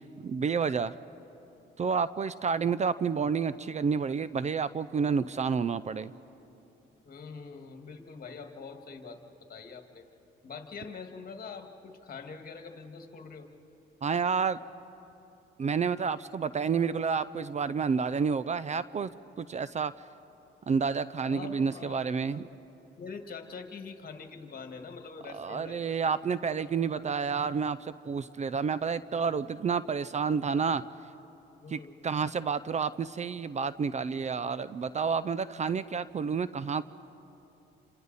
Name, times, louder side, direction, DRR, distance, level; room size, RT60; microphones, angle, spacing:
voice 1, 0.2-0.9 1.8-6.1 14.0-14.6 15.6-19.1 19.4-19.9 20.7-22.5 25.3-30.8 31.7-36.8, right 5 dB, 35° right, 16 dB, 0.5 m, -29 dB
voice 2, 7.1-9.2 9.5-10.1 10.4-13.5 21.3-22.1 22.3-22.6 23.0-26.0 31.6-32.0, left 5 dB, 45° left, 5 dB, 2.0 m, -44 dB
28.5 x 26.5 x 4.1 m, 2.9 s
cardioid pair, 90°, 20 cm